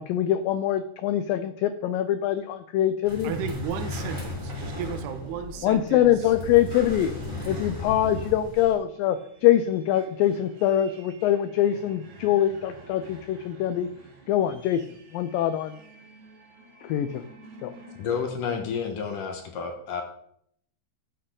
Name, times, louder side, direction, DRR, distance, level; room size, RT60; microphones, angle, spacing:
voice 1, 0.0-3.3 5.6-7.1 7.5-13.9 14.3-14.8 15.1-15.8 16.8-17.3 17.6-17.7, left 11 dB, 90° left, 11 dB, 2.0 m, -24 dB
sound 1, 3.1-8.7, left 2 dB, 5° right, 4.5 m, -35 dB
voice 2, 3.2-6.1, right 8 dB, 90° right, 9 dB, 3.0 m, -34 dB
sound 2, 9.1-18.2, right 2 dB, 55° right, 2.8 m, -50 dB
voice 3, 18.0-20.0, left 6 dB, 65° left, 4 dB, 2.4 m, -30 dB
13.0 x 8.1 x 3.8 m, 0.69 s
omnidirectional pair, 4.7 m